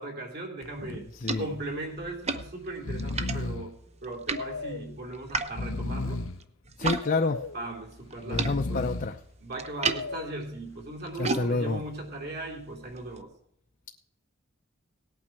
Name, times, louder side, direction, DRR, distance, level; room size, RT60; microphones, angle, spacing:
voice 1, 0.0-1.1 1.4-3.7 4.0-6.2 7.5-8.9 9.4-13.3, right 2 dB, 50° right, 0 dB, 3.1 m, -38 dB
Breathing, 0.6-1.0 1.3-1.4 2.3-2.5 2.7-3.7 4.3-4.9 5.4-6.4 7.0-7.6 8.2-9.2 9.8-10.4, left 3 dB, 80° left, 0.7 m, -34 dB
sound 1, 0.6-7.1 7.3-13.2, right 4 dB, 30° right, 0.8 m, -37 dB
voice 2, 0.8-1.5 6.8-7.4 8.2-9.2 11.2-11.8, left 3 dB, 45° left, 4 dB, 0.7 m, -29 dB
18.0 x 8.9 x 4.6 m, 0.71 s
head